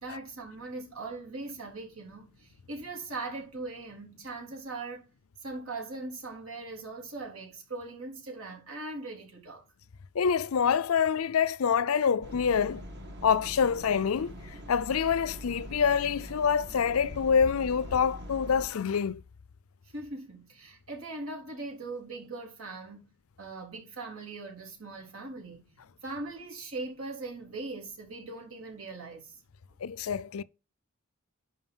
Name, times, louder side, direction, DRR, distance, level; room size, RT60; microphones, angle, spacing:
voice 1, 0.0-5.1 5.4-9.6 19.8-23.1 23.4-29.4, right 3 dB, 80° right, 3.8 m, -40 dB
voice 2, 10.2-12.8 13.2-14.3 14.7-19.2 29.8-30.4, left 7 dB, 80° left, 0.5 m, -26 dB
sound 1, 12.2-18.7, equal, 55° right, 2.0 m, -43 dB
11.0 x 4.9 x 5.4 m
head